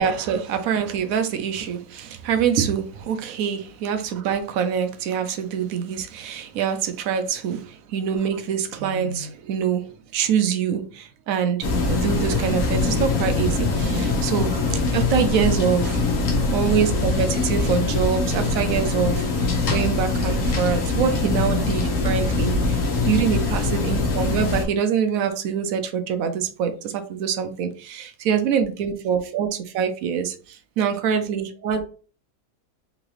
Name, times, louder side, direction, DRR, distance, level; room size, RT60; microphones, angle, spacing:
voice 1, 0.0-16.1 16.5-19.3 19.7-31.9, right 7 dB, 70° right, 8 dB, 1.0 m, -25 dB
sound 1, 11.6-24.6, left 3 dB, 60° left, 1.2 m, -23 dB
3.9 x 2.9 x 3.1 m, 0.39 s
omnidirectional pair, 1.7 m